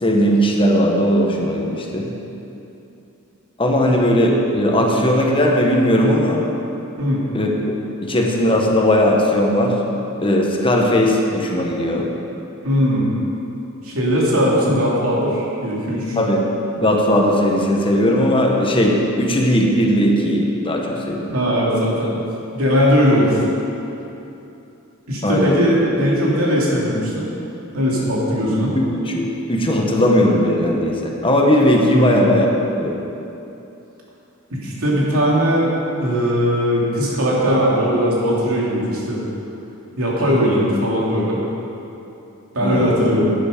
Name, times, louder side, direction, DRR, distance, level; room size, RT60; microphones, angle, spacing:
voice 1, 0.0-2.1 3.6-6.4 7.3-7.5 8.0-9.8 10.2-12.1 16.2-16.4 16.8-21.3 25.2-25.6 28.7-32.5 32.8-33.0 42.6-43.0, equal, 25° left, 0 dB, 1.2 m, -18 dB
voice 2, 12.6-13.1 13.8-16.2 21.3-22.2 22.5-23.4 25.1-27.2 27.7-28.8 31.9-32.2 34.5-35.7 36.0-39.2 40.0-41.4 42.5-43.3, equal, 80° right, -5 dB, 2.8 m, -19 dB
12.0 x 9.9 x 5.2 m, 2.9 s
head